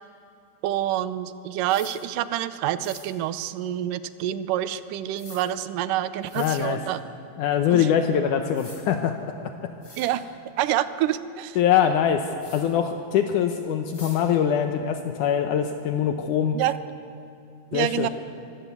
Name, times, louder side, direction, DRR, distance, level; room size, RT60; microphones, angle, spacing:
voice 1, 0.6-7.0 7.7-7.9 10.0-10.2 10.6-11.6 16.5-16.7 17.7-18.1, right 12 dB, 80° right, 14 dB, 2.3 m, -27 dB
sound 1, 1.7-1.9 2.8-3.0 5.2-5.4 6.2-6.6 8.1-8.2 8.5-8.8 9.4-9.5 9.8-10.1 12.4-12.6 13.9-14.2, left 2 dB, 30° left, 5.1 m, -44 dB
voice 2, 6.4-6.8 7.4-9.7 11.6-16.6 17.7-18.1, left 8 dB, 75° left, 6 dB, 2.3 m, -23 dB
24.5 x 15.0 x 8.2 m, 2.6 s
omnidirectional pair, 3.9 m